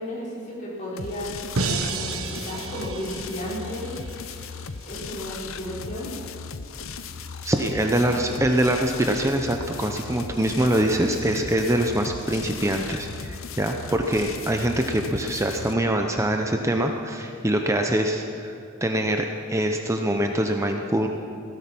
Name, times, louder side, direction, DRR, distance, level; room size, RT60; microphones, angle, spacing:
voice 1, 0.0-3.9 4.9-6.1 6.7-6.8, equal, 40° left, -7 dB, 4.8 m, -34 dB
sound 1, 1.0-15.7, left 5 dB, 70° left, 0.7 m, -37 dB
sound 2, 1.6-4.7, right 4 dB, 80° right, 1.1 m, -31 dB
voice 2, 7.4-18.5 18.8-21.1, right 1 dB, 15° right, 3 dB, 0.7 m, -24 dB
16.5 x 13.5 x 6.0 m, 2.6 s
head